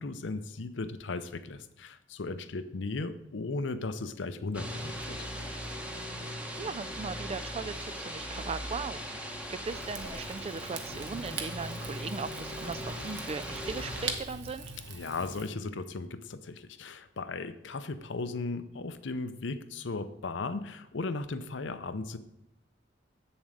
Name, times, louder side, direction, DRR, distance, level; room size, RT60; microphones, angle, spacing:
voice 1, 0.0-5.2 14.9-22.2, left 3 dB, 70° left, 12 dB, 0.6 m, -36 dB
sound 1, 4.5-14.1, equal, 5° right, 1.0 m, -39 dB
voice 2, 6.3-14.7, right 4 dB, 30° right, 16 dB, 0.3 m, -39 dB
Rain / Fire, 9.6-15.5, right 4 dB, 65° right, 1.1 m, -42 dB
7.9 x 7.3 x 5.0 m, 0.83 s
head